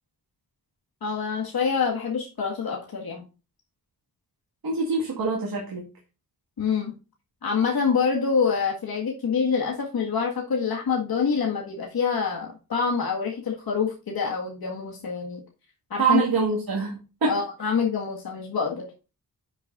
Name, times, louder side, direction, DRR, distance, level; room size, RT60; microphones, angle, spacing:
voice 1, 1.0-3.3 6.6-6.9 7.4-15.4 15.9-16.2 17.3-18.9, left 5 dB, 80° left, 1.9 m, -26 dB
voice 2, 4.6-5.9 16.0-17.4, right 4 dB, 75° right, 2.0 m, -25 dB
10.0 x 6.6 x 2.6 m
wide cardioid pair, 115°, 36 cm